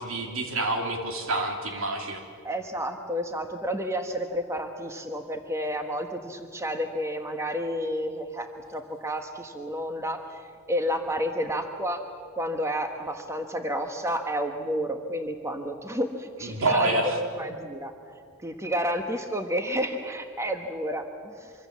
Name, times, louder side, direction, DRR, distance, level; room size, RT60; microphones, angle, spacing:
voice 1, 0.0-2.2 16.4-17.2, right 2 dB, 65° right, 3 dB, 3.1 m, -27 dB
voice 2, 2.4-12.0 12.4-16.9 17.2-17.9 18.4-21.5, equal, 15° right, 5 dB, 1.3 m, -31 dB
25.5 x 24.5 x 7.4 m, 2.2 s
head